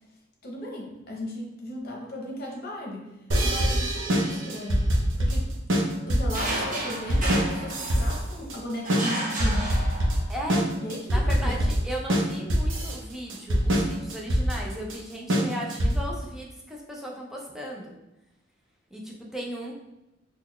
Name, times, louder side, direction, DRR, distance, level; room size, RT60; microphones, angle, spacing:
voice 1, 0.4-3.1 3.4-4.9 5.2-5.5 6.1-9.9 10.8-11.7, left 1 dB, 55° left, -1 dB, 0.8 m, -36 dB
sound 1, 3.3-16.2, equal, 75° right, 0.7 m, -24 dB
sound 2, 6.3-8.3 8.8-10.4, right 1 dB, 45° right, 0.9 m, -32 dB
voice 2, 10.3-10.7 11.1-18.0 18.9-19.8, equal, ahead, -3 dB, 0.5 m, -36 dB
3.8 x 2.3 x 3.2 m, 0.93 s
head